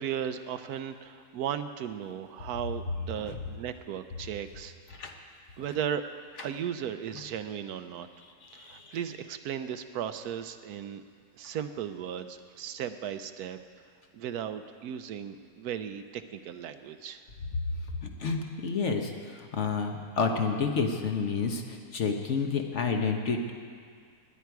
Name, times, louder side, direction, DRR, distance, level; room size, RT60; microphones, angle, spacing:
voice 1, 0.0-4.7 5.6-6.0 6.4-8.1 8.5-11.0 11.4-13.6 14.1-17.2, right 9 dB, 75° right, 10 dB, 1.1 m, -36 dB
voice 2, 8.4-9.0 18.2-23.5, left 5 dB, 50° left, 3 dB, 1.1 m, -30 dB
18.5 x 10.5 x 4.7 m, 2.1 s
omnidirectional pair, 1.7 m